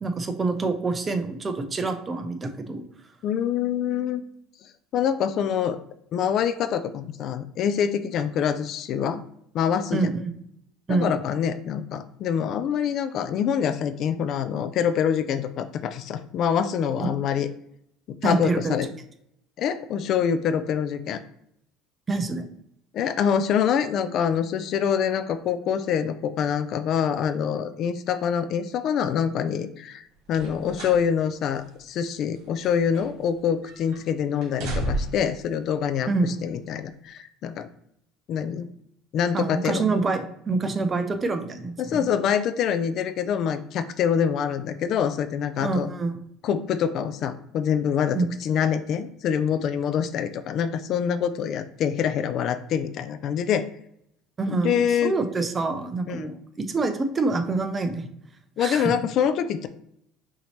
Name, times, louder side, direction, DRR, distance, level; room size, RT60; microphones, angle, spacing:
voice 1, 0.0-2.8 9.9-10.3 10.9-11.1 17.0-17.1 18.2-18.8 22.1-22.5 36.1-36.3 39.3-42.1 45.6-46.2 48.1-48.3 54.4-58.1 58.6-58.9, right 3 dB, 20° right, 8 dB, 0.5 m, -26 dB
voice 2, 3.2-4.2 4.9-5.8 6.1-9.2 9.5-10.1 10.9-17.5 18.2-18.9 19.6-21.2 22.9-37.7 38.3-38.7 39.1-39.8 41.8-45.9 46.4-53.7 54.5-55.1 56.1-56.3 58.6-59.7, left 8 dB, 50° left, 11 dB, 0.3 m, -25 dB
sound 1, 30.3-31.1 31.4-31.6 32.3-33.4 33.6-34.0 34.4-35.3 36.2-36.3, right 1 dB, 70° right, 1.7 m, -32 dB
5.8 x 2.8 x 3.1 m, 0.72 s
cardioid pair, 120°, 0 cm